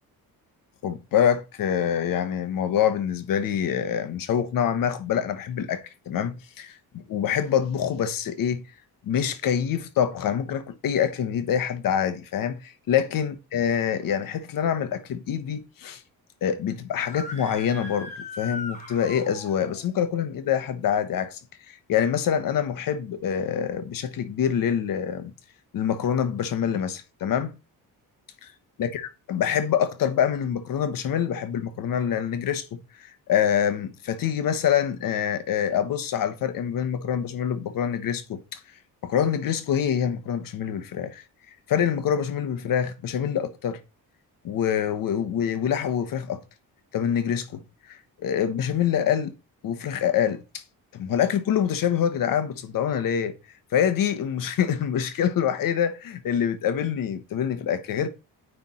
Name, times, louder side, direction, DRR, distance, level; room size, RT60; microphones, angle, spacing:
voice 1, 0.8-8.6 9.0-16.0 16.4-18.1 18.4-21.4 21.7-25.3 25.7-27.5 28.4-28.5 28.8-38.6 39.0-41.2 41.7-43.8 44.4-46.4 46.9-47.6 47.9-49.3 49.6-50.6 50.9-53.3 53.7-58.1, left 8 dB, 60° left, 1.0 m, -25 dB
Screaming, 17.0-19.8, left 3 dB, 20° left, 1.7 m, -39 dB
9.5 x 3.5 x 4.2 m
cardioid pair, 135°, 37 cm